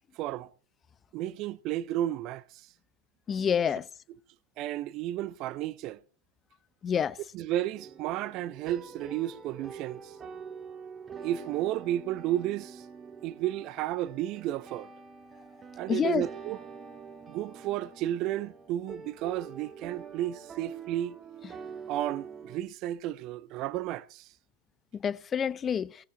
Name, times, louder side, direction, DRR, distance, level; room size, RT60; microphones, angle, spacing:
voice 1, 0.2-0.5 1.1-2.4 4.1-4.2 4.6-6.0 7.3-10.1 11.2-12.8 13.2-14.9 15.8-16.6 17.3-21.2 21.9-24.3, right 13 dB, 40° right, 0.5 m, -32 dB
voice 2, 3.3-3.8 6.8-7.1 15.9-16.2 25.0-25.9, left 7 dB, 20° left, 0.5 m, -27 dB
sound 1, 7.7-22.6, right 6 dB, 20° right, 1.4 m, -46 dB
18.0 x 8.1 x 3.7 m
figure-of-eight pair, 90°, 0 cm